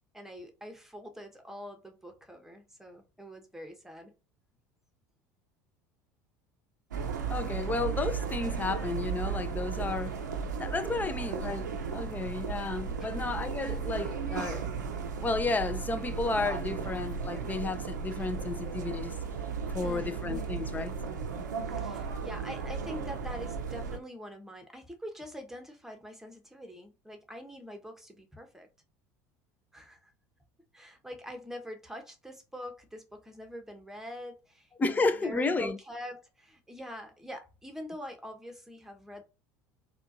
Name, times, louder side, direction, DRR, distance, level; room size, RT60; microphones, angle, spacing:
voice 1, 0.1-4.1 11.0-11.4 19.8-20.2 21.6-28.7 29.7-30.1 30.7-39.2, equal, 5° right, 1.1 m, -44 dB
sound 1, 6.9-24.0, right 6 dB, 85° right, 0.7 m, -35 dB
voice 2, 7.3-10.2 10.6-14.7 15.2-19.2 19.7-20.9 34.8-35.8, left 3 dB, 20° left, 0.6 m, -32 dB
4.4 x 2.5 x 2.7 m
hypercardioid pair, 75°, 10 cm